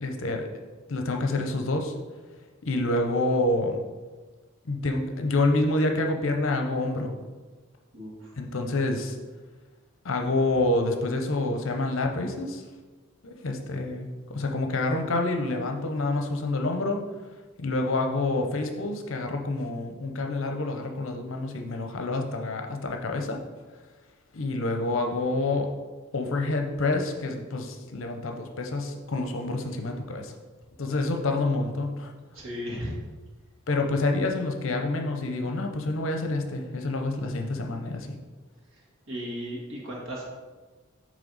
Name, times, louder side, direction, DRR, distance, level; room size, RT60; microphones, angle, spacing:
voice 1, 0.0-0.5 0.9-1.9 2.6-3.8 4.6-7.1 8.4-9.2 10.0-12.6 13.2-17.0 17.6-23.4 24.3-25.7 26.1-30.3 30.8-32.1 33.7-38.2, left 2 dB, 65° left, 3 dB, 0.7 m, -27 dB
voice 2, 7.9-8.3 32.3-33.0 39.1-40.3, equal, 65° right, -3 dB, 1.7 m, -35 dB
8.6 x 3.2 x 4.0 m, 1.3 s
head